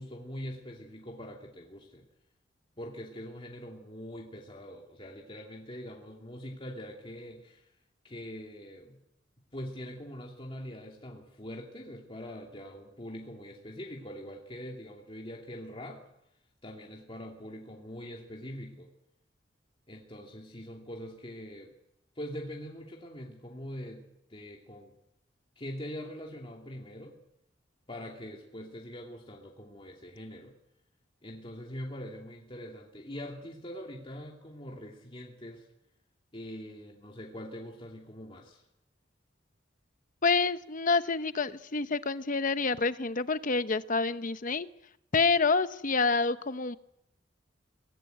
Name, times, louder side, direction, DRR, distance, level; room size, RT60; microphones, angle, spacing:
voice 1, 0.0-2.0 2.8-7.7 8.0-9.0 9.5-16.0 16.6-18.9 19.9-21.7 22.1-24.0 24.3-24.9 25.6-27.2 27.9-30.5 31.2-35.7 36.3-38.6, equal, 30° left, -1 dB, 2.6 m, -43 dB
voice 2, 40.2-44.7 45.1-46.8, left 4 dB, 45° left, 12 dB, 0.9 m, -27 dB
23.0 x 18.5 x 9.2 m, 0.82 s
head